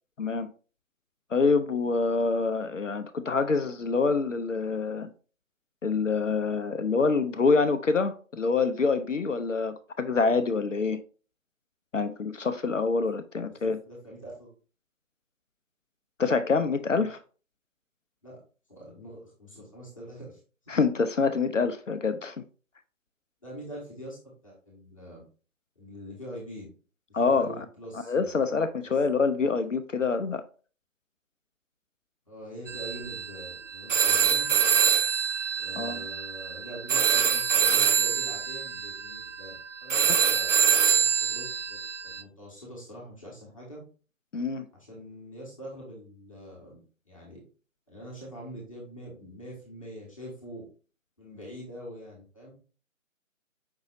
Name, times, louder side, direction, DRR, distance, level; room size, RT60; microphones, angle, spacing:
voice 1, 0.2-0.5 1.3-5.1 5.8-11.0 11.9-13.8 16.2-17.2 20.7-22.4 27.1-27.6 28.1-30.4 35.8-36.0 44.3-44.7, left 4 dB, 65° left, 0.5 m, -26 dB
voice 2, 13.6-14.5 18.2-18.4 18.7-20.7 23.4-25.2 25.7-26.7 27.1-28.5 32.2-34.5 35.6-43.8 44.7-46.8 47.0-47.4 47.9-50.6 51.2-52.5, equal, 25° left, 1.3 m, -44 dB
sound 1, 32.7-42.2, right 7 dB, 65° right, 0.5 m, -25 dB
5.4 x 3.9 x 2.5 m
figure-of-eight pair, 160°, 41 cm